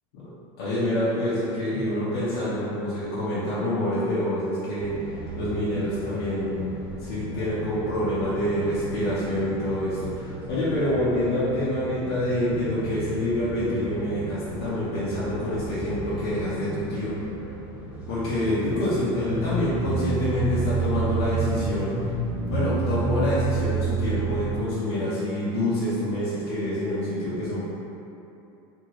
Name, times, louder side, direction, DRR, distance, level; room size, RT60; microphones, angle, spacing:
voice 1, 0.6-6.7 7.0-17.1 18.1-22.1 22.5-27.7, left 1 dB, 80° left, -10 dB, 0.7 m, -27 dB
sound 1, 4.8-24.4, right 2 dB, 10° right, 0.8 m, -38 dB
sound 2, 19.3-24.6, right 4 dB, 30° right, 0.5 m, -27 dB
2.6 x 2.6 x 3.0 m, 2.9 s
supercardioid pair, 155°, 13 cm